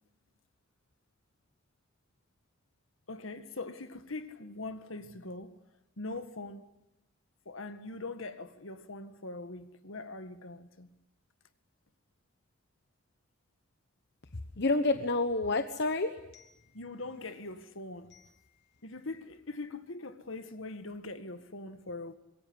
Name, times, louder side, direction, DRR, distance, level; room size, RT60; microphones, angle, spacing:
voice 1, 3.1-5.5 6.0-6.7 7.5-10.9 16.7-18.1 18.8-22.2, left 2 dB, 75° left, 1.9 m, -42 dB
voice 2, 14.6-16.7 17.2-17.3 18.1-18.2, left 2 dB, 60° left, 1.2 m, -30 dB
25.5 x 22.0 x 9.9 m
head